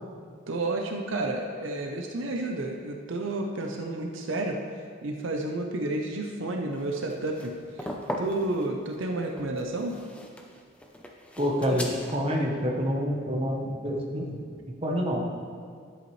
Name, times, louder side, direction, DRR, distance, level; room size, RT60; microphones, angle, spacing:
voice 1, 0.5-7.9 8.2-10.0, right 2 dB, 70° right, 2 dB, 0.7 m, -31 dB
sound 1, 6.8-12.2, equal, 5° left, 0.5 m, -38 dB
voice 2, 11.4-15.2, equal, 30° right, -1 dB, 1.0 m, -28 dB
10.5 x 8.0 x 3.2 m, 2.1 s
head